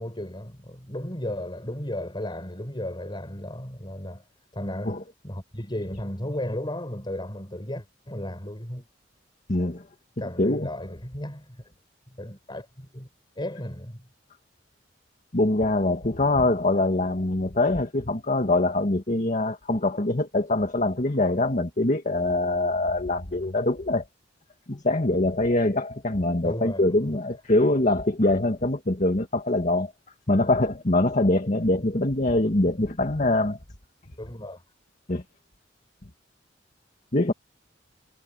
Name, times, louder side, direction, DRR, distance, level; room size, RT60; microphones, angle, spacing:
voice 1, 0.0-4.2 4.5-8.9 10.2-11.6 12.1-13.1 13.4-14.0 26.4-27.0 34.2-34.6, left 1 dB, 25° left, 6.0 m, -34 dB
voice 2, 9.5-9.8 10.4-10.7 15.3-24.1 24.7-29.9 30.3-33.6 35.1-35.2 37.1-37.3, left 2 dB, 45° left, 1.8 m, -23 dB
head